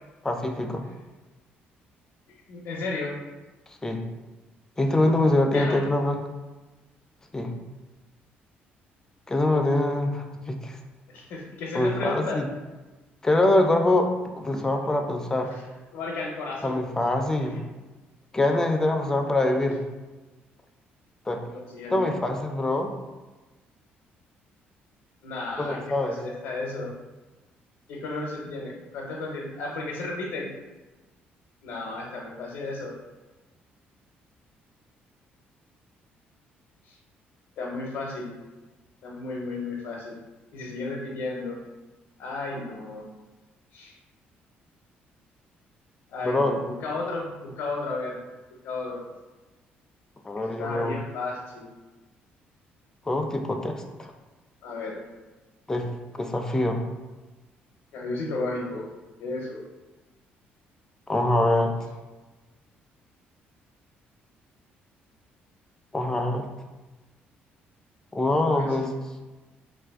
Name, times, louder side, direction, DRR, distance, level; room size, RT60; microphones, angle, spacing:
voice 1, 0.2-0.8 3.8-4.0 4.8-6.2 7.3-7.5 9.3-10.8 11.7-12.5 13.2-15.5 16.6-17.6 18.3-19.8 21.3-21.4 21.9-22.9 25.6-26.1 46.2-46.6 50.3-51.0 53.1-54.1 55.7-55.9 56.2-56.8 61.1-61.7 65.9-66.5 68.1-68.9, left 1 dB, 15° left, 4 dB, 0.3 m, -24 dB
voice 2, 2.5-3.3 5.5-5.8 11.1-12.4 15.5-15.6 15.9-16.8 17.5-17.6 21.4-22.0 25.2-26.9 27.9-30.5 31.6-32.9 36.8-37.0 37.6-38.3 39.0-40.2 40.5-41.6 42.2-43.1 43.7-43.9 46.1-48.2 48.6-49.1 50.4-51.7 54.6-55.1 57.9-58.9 59.2-59.6 68.5-68.9, left 3 dB, 80° left, -2 dB, 0.5 m, -33 dB
2.5 x 2.5 x 3.5 m, 1.2 s
cardioid pair, 125°, 4 cm